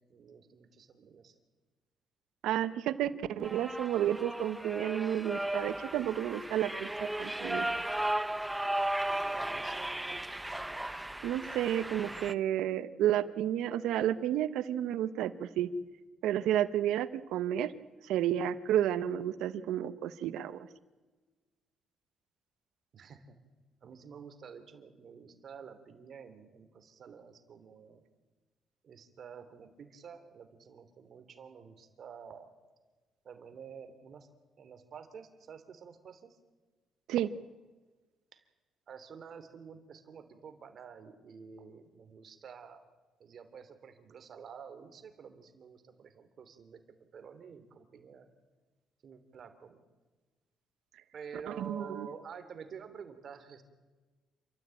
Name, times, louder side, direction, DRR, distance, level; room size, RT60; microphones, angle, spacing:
voice 1, 0.1-1.3 9.3-10.2 22.9-23.3 23.8-28.0 28.8-32.5 33.2-34.3 34.6-36.4 38.3-38.4 38.9-42.8 43.2-46.8 47.1-48.3 49.0-49.8 51.1-53.6, right 6 dB, 55° right, 8 dB, 3.0 m, -49 dB
voice 2, 2.4-7.7 11.2-15.7 16.2-17.7 18.0-20.7 37.1-37.3 51.5-52.1, right 11 dB, 90° right, 14 dB, 1.1 m, -31 dB
sound 1, 3.4-12.3, right 1 dB, 10° right, 0.8 m, -35 dB
28.5 x 13.5 x 9.0 m, 1.3 s
cardioid pair, 90°, 0 cm